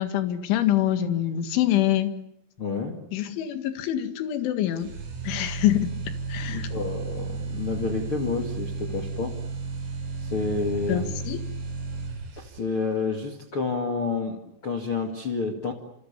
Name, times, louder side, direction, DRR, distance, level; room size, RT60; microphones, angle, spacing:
voice 1, 0.0-2.1 3.1-4.9 5.2-5.9 6.3-6.7 10.9-11.4, left 12 dB, 75° left, 10 dB, 4.3 m, -25 dB
voice 2, 2.6-3.0 6.4-9.4 10.2-11.1 12.3-15.7, left 4 dB, 40° left, 5 dB, 2.2 m, -29 dB
sound 1, 4.8-12.8, right 3 dB, 60° right, 7.8 m, -33 dB
29.0 x 28.0 x 7.1 m, 0.72 s
omnidirectional pair, 5.6 m